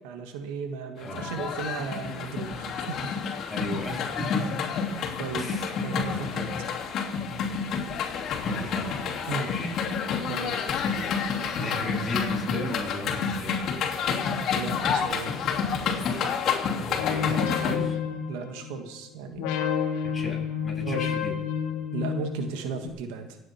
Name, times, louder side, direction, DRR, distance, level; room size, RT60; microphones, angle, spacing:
voice 1, 0.0-3.2 5.2-6.5 9.3-9.5 10.3-10.5 14.5-15.3 18.3-19.5 20.8-21.0 21.9-23.4, right 5 dB, 85° right, 6 dB, 1.6 m, -35 dB
sound 1, 1.0-17.8, left 6 dB, 50° left, 2.9 m, -29 dB
voice 2, 1.0-1.3 3.5-4.6 5.4-5.8 6.1-6.2 8.3-9.7 11.5-13.6 16.9-18.0 20.1-21.3, equal, 20° left, -3 dB, 7.3 m, -35 dB
sound 2, 17.0-18.9 19.4-22.9, left 8 dB, 85° left, 2.1 m, -30 dB
25.5 x 9.0 x 4.4 m, 0.89 s
supercardioid pair, 110°, 0 cm